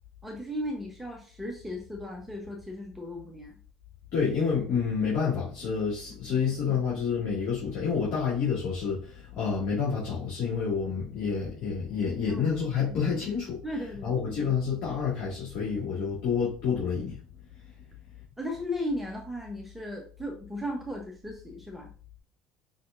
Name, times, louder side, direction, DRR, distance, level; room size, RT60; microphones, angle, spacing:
voice 1, 0.2-3.6 12.2-12.5 12.9-13.0 13.6-14.1 18.4-21.9, left 1 dB, 5° right, 0 dB, 1.1 m, -36 dB
voice 2, 4.1-13.6 14.0-17.1, left 6 dB, 60° left, -7 dB, 2.2 m, -28 dB
5.7 x 3.4 x 2.6 m, 0.40 s
hypercardioid pair, 70°, 3 cm